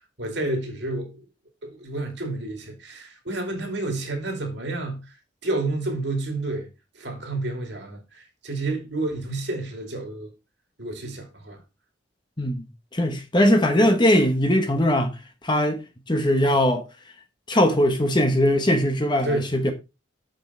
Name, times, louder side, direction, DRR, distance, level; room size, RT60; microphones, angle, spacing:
voice 1, 0.2-1.2 1.6-5.0 5.4-6.7 6.9-10.3 10.8-11.6 19.2-19.5, right 2 dB, 60° right, 2.6 m, -30 dB
voice 2, 12.9-15.2 15.4-15.8 16.1-16.8 17.5-19.7, left 1 dB, 25° left, 1.1 m, -20 dB
7.1 x 6.5 x 4.2 m
head